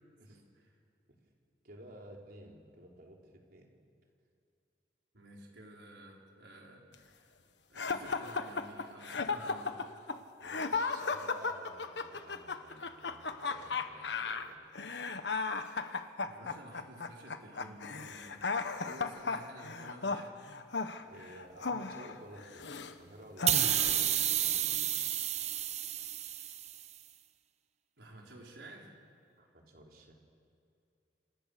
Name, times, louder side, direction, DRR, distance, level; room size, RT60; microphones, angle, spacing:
voice 1, 1.6-3.7 10.4-14.6 21.0-25.0 29.4-30.1, right 1 dB, 55° right, 0 dB, 4.2 m, -53 dB
voice 2, 5.1-7.3 7.7-9.8 16.2-18.4 18.8-20.3 28.0-28.9, right 1 dB, 90° right, -1 dB, 5.3 m, -52 dB
sound 1, 7.8-22.9 23.4-24.1, left 4 dB, 80° left, 1.4 m, -36 dB
sound 2, 23.5-26.8, right 11 dB, 40° right, 0.9 m, -31 dB
27.5 x 27.5 x 6.9 m, 2.5 s
head